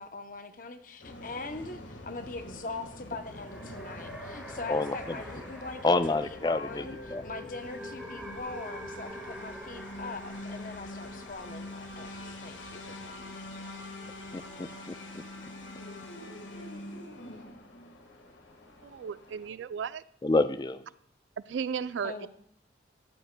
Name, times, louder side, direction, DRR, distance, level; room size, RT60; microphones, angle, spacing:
voice 1, 0.0-13.1 22.0-22.3, left 3 dB, 45° left, 8 dB, 0.8 m, -42 dB
sound 1, 1.0-19.5, left 1 dB, 85° left, 1.6 m, -45 dB
sound 2, 3.1-16.5, equal, ahead, 1.5 m, -47 dB
voice 2, 5.8-6.9 7.1-7.2 14.3-15.2 20.2-20.8, left 2 dB, 20° left, 12 dB, 0.3 m, -28 dB
voice 3, 18.8-20.0 21.5-22.3, right 6 dB, 80° right, 17 dB, 0.3 m, -35 dB
13.5 x 11.0 x 2.2 m, 0.66 s
head